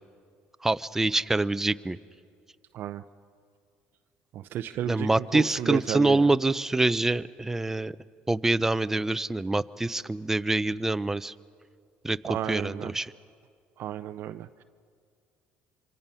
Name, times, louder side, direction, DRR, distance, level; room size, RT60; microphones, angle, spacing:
voice 1, 0.6-2.0 4.9-8.0 8.3-11.3 12.0-12.2 12.5-13.1, right 2 dB, 10° right, 14 dB, 0.5 m, -25 dB
voice 2, 4.3-6.3 12.2-12.9 13.8-14.6, right 11 dB, 60° right, 10 dB, 0.5 m, -33 dB
26.0 x 25.0 x 5.6 m, 2.2 s
cardioid pair, 115°, 4 cm